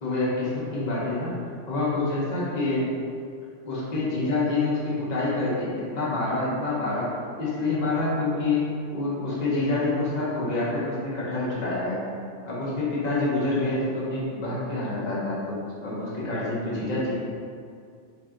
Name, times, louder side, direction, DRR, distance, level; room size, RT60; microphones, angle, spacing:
voice 1, 0.0-1.3 1.7-2.9 3.6-8.7 8.9-12.0 12.4-17.3, left 2 dB, 35° left, -8 dB, 1.0 m, -27 dB
3.5 x 2.7 x 3.6 m, 2.2 s
omnidirectional pair, 1.3 m